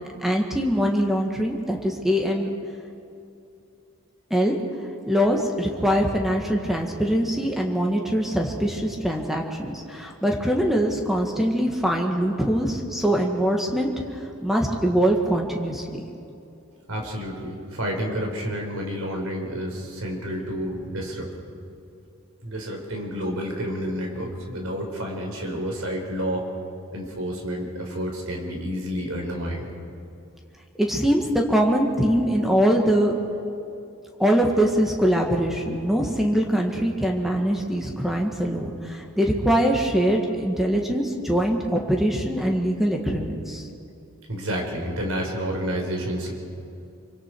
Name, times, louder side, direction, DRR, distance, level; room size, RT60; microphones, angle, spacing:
voice 1, 0.2-2.5 4.3-4.6 5.1-15.8 30.8-33.1 34.2-43.7, equal, ahead, 0 dB, 1.6 m, -23 dB
voice 2, 16.9-21.3 22.4-26.5 26.9-29.7 44.3-46.3, equal, 75° right, 1 dB, 4.4 m, -30 dB
25.0 x 24.5 x 4.7 m, 2.7 s
head